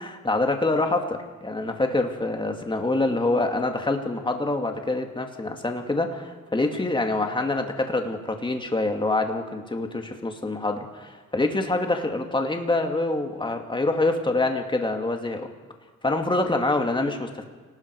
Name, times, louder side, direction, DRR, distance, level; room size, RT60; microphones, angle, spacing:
voice 1, 0.0-15.5 16.0-17.4, left 2 dB, 15° left, 4 dB, 2.6 m, -26 dB
28.5 x 19.5 x 4.9 m, 1.4 s
cardioid pair, 90°, 30 cm